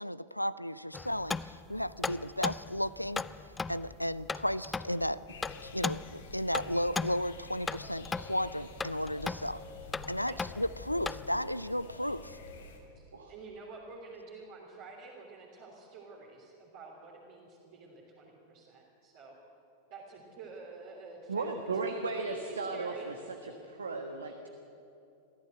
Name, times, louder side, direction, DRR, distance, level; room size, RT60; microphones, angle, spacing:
voice 1, 0.0-3.2 3.7-5.2 5.6-9.6 10.1-12.4, equal, 90° left, 18 dB, 0.5 m, -34 dB
sound 1, 0.9-11.4, left 4 dB, 15° left, 0.5 m, -38 dB
sound 2, 5.3-12.8, left 3 dB, 65° left, 2.9 m, -49 dB
voice 2, 12.9-19.3 19.9-21.5 22.2-23.1, right 3 dB, 50° right, -4 dB, 3.3 m, -49 dB
voice 3, 21.3-23.1 23.4-24.5, right 3 dB, 70° right, 5 dB, 1.4 m, -35 dB
23.0 x 14.5 x 8.0 m, 2.8 s
figure-of-eight pair, 90°, 0 cm